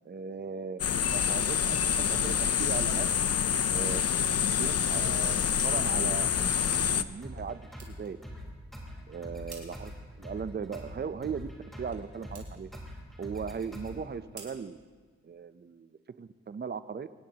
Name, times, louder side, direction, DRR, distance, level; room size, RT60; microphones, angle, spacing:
voice 1, 0.1-1.8 2.1-3.1 3.7-4.0 4.3-8.2 9.1-9.9 10.2-11.5 11.8-12.8 13.2-14.8 15.2-17.1, right 6 dB, 35° right, 13 dB, 0.6 m, -38 dB
sound 1, 0.8-7.0, left 8 dB, 55° left, 0.6 m, -27 dB
sound 2, 1.0-15.7, right 4 dB, 70° right, 4.6 m, -57 dB
sound 3, 6.2-14.2, equal, ahead, 4.2 m, -44 dB
25.5 x 19.5 x 2.9 m, 1.5 s
wide cardioid pair, 110°, 29 cm